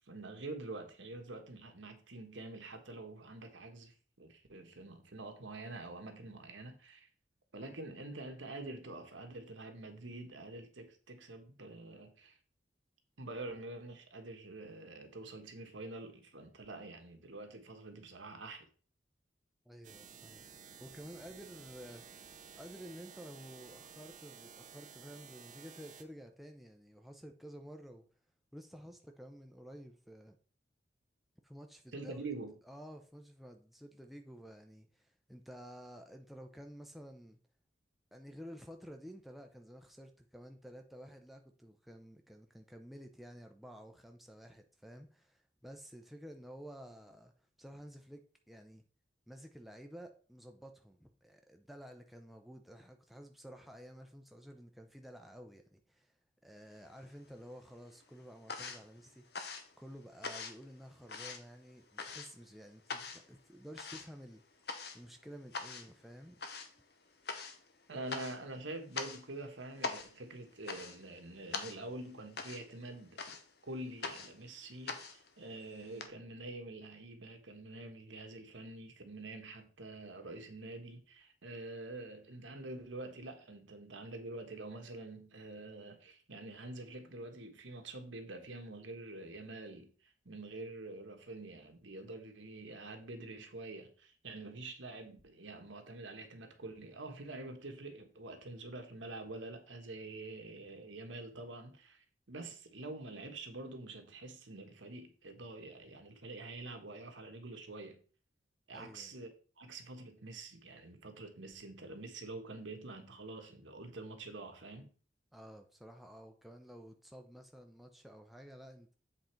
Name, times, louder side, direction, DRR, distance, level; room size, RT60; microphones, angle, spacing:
voice 1, 0.1-7.1 7.5-12.4 13.2-18.7 31.9-32.5 67.9-73.2 73.6-108.0 108.7-114.9, right 2 dB, 85° right, 1.3 m, -46 dB
voice 2, 19.7-20.4 20.8-22.1 22.5-28.1 28.5-30.4 31.4-32.3 32.6-37.4 38.1-48.8 49.3-56.1 56.4-59.3 59.8-64.4 64.7-66.4 108.7-109.1 115.3-119.0, equal, ahead, 0.6 m, -52 dB
sound 1, 19.8-26.0, right 6 dB, 40° right, 0.7 m, -54 dB
sound 2, 56.7-57.5 57.8-76.1, left 4 dB, 60° left, 0.9 m, -44 dB
7.8 x 3.9 x 4.5 m
head